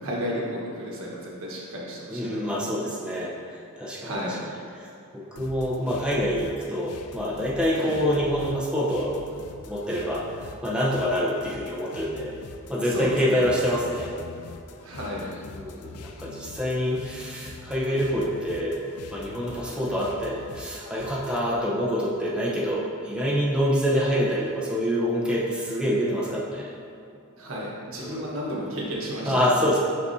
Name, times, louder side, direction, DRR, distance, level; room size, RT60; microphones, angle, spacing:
voice 1, 0.0-2.6 3.1-3.3 4.0-4.4 7.8-7.9 12.9-13.4 14.8-15.3 27.3-29.3, equal, 65° right, -4 dB, 1.4 m, -32 dB
voice 2, 2.1-4.4 4.7-9.2 9.7-10.3 10.6-12.4 12.7-14.1 15.5-18.8 19.1-26.7 27.9-28.3 29.2-29.8, equal, 5° right, -6 dB, 0.8 m, -26 dB
sound 1, 5.4-21.5, left 3 dB, 85° left, 0.5 m, -44 dB
11.0 x 4.2 x 2.7 m, 2.4 s
head